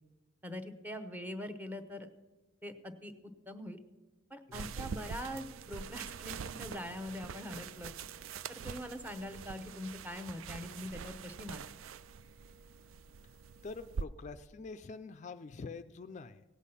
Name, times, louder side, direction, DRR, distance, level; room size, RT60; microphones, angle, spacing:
voice 1, 0.4-2.1 2.6-3.1 3.5-3.8 4.3-7.9 8.5-11.6, left 1 dB, 10° right, 6 dB, 0.8 m, -43 dB
voice 2, 4.5-4.9 13.6-16.4, left 4 dB, 35° left, 10 dB, 0.4 m, -46 dB
sound 1, 4.5-14.0, right 6 dB, 85° right, 0.4 m, -44 dB
17.5 x 8.2 x 5.6 m, 1.1 s
head